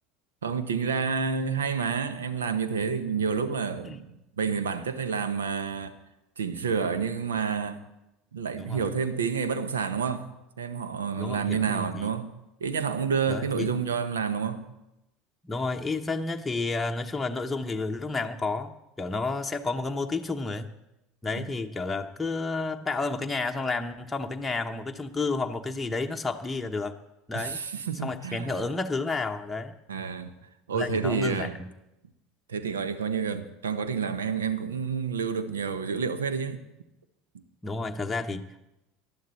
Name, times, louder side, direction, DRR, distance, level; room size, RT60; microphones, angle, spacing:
voice 1, 0.4-5.9 6.4-7.8 8.3-10.3 10.6-12.3 12.6-14.7 21.4-21.5 27.3-28.6 29.9-30.3 30.7-31.6 32.5-36.6, right 6 dB, 80° right, 1.0 m, -29 dB
voice 2, 11.2-12.1 13.3-13.7 15.4-20.7 21.2-26.9 27.3-27.6 28.0-29.8 30.7-31.7 37.6-38.7, left 3 dB, 10° left, 0.9 m, -31 dB
19.0 x 12.5 x 4.3 m
figure-of-eight pair, 70°, 0 cm